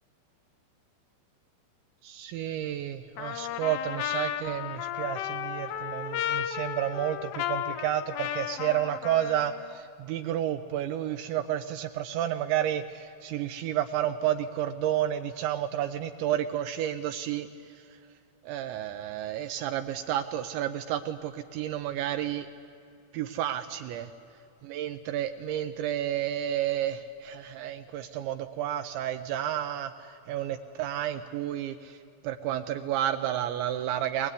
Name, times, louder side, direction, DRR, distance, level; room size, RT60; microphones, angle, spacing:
voice 1, 2.0-17.5 18.4-22.5 23.1-24.1 24.6-32.0 32.2-34.3, right 11 dB, 80° right, 8 dB, 2.7 m, -31 dB
Trumpet, 3.2-9.8, left 11 dB, 80° left, 3.3 m, -34 dB
22.0 x 21.0 x 9.8 m, 2.7 s
omnidirectional pair, 5.8 m